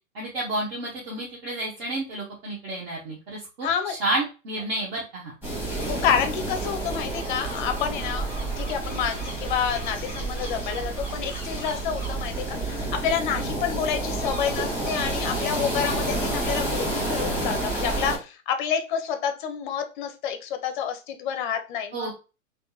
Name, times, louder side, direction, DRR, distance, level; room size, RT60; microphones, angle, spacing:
voice 1, 0.1-5.3 21.9-22.1, right 2 dB, 50° right, -5 dB, 1.2 m, -30 dB
voice 2, 3.6-3.9 5.8-8.3 8.6-22.1, left 8 dB, 35° left, 7 dB, 0.6 m, -28 dB
sound 1, 5.4-18.2, right 2 dB, 5° right, 1.5 m, -29 dB
3.4 x 2.2 x 2.8 m, 0.32 s
hypercardioid pair, 120°, 41 cm